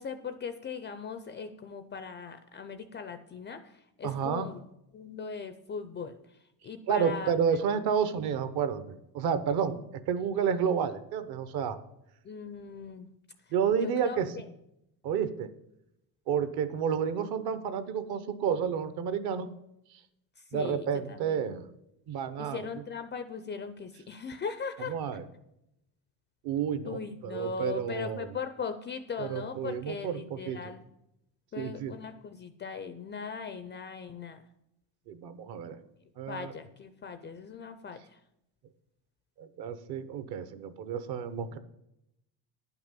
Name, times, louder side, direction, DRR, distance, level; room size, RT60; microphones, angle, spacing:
voice 1, 0.0-4.6 4.9-6.2 6.6-7.3 12.2-13.1 13.8-14.5 20.5-21.6 22.4-24.9 26.9-30.9 31.5-34.4 36.3-38.0, left 5 dB, 25° left, 9 dB, 0.4 m, -39 dB
voice 2, 4.0-4.5 6.9-9.8 10.1-11.8 13.5-14.3 15.0-15.5 16.3-19.5 20.5-21.6 22.1-22.7 24.8-25.2 26.4-28.3 29.2-30.6 31.6-31.9 35.1-35.8 36.2-36.5 39.4-41.6, right 7 dB, 55° right, 12 dB, 1.0 m, -30 dB
10.5 x 6.0 x 7.3 m, 0.83 s
cardioid pair, 165°, 47 cm